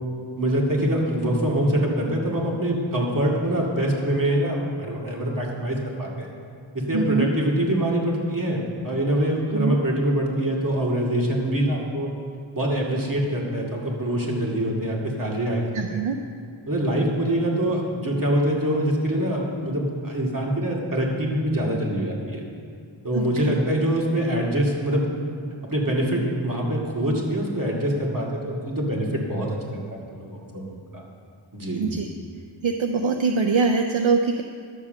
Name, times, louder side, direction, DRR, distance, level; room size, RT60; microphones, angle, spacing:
voice 1, 0.4-6.3 6.7-12.1 12.5-16.0 16.7-22.4 23.0-25.1 25.6-31.0 31.5-31.9, right 1 dB, 40° right, -2 dB, 2.2 m, -24 dB
voice 2, 6.9-7.3 9.5-9.8 15.7-16.2 23.1-23.6 31.8-32.1 32.6-34.4, right 4 dB, 70° right, 5 dB, 0.6 m, -23 dB
11.0 x 7.3 x 6.3 m, 2.2 s
wide cardioid pair, 75°, 49 cm